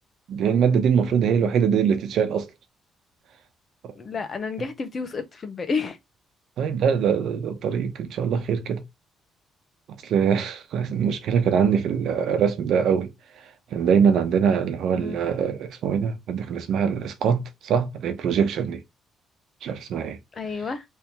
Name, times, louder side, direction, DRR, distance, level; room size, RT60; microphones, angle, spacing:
voice 1, 0.3-2.5 6.6-8.8 10.0-13.1 13.7-18.8 19.6-20.2, right 7 dB, 75° right, 0.8 m, -23 dB
voice 2, 4.0-6.0 14.9-15.2 20.3-20.8, left 4 dB, 40° left, 1.0 m, -30 dB
3.3 x 2.9 x 3.4 m
cardioid pair, 90°, 0 cm